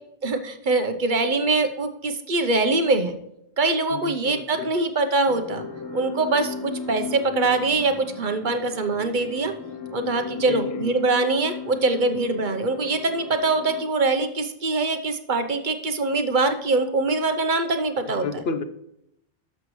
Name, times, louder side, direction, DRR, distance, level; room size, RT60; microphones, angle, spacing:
voice 1, 0.2-3.2 3.6-5.7 5.9-9.5 9.9-18.4, right 3 dB, 50° right, 7 dB, 0.9 m, -23 dB
voice 2, 3.9-4.7 10.4-10.9 18.1-18.6, left 5 dB, 75° left, 9 dB, 0.9 m, -31 dB
sound 1, 5.3-13.8, left 5 dB, 25° left, 0.5 m, -36 dB
12.5 x 6.4 x 3.1 m, 0.79 s
omnidirectional pair, 1.1 m